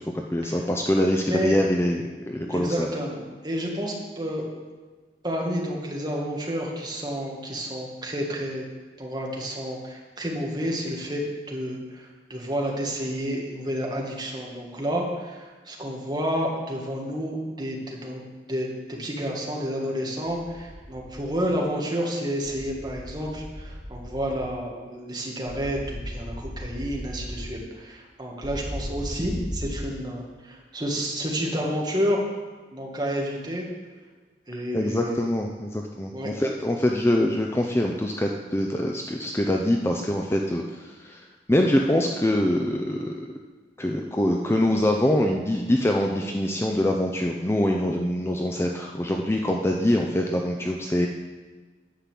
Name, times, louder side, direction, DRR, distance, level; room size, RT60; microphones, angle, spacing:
voice 1, 0.1-2.9 34.7-40.6 41.0-41.2 41.5-43.3 43.8-51.1, left 1 dB, 15° left, 1 dB, 0.6 m, -24 dB
voice 2, 2.5-4.4 5.2-8.6 9.0-18.2 18.5-32.2 32.7-33.7 34.5-35.3 36.1-36.3, equal, 25° right, -2 dB, 1.9 m, -30 dB
sound 1, 20.3-21.4 22.4-24.5 25.5-27.5 28.4-29.7, equal, 45° right, 3.0 m, -37 dB
10.5 x 5.7 x 7.5 m, 1.4 s
head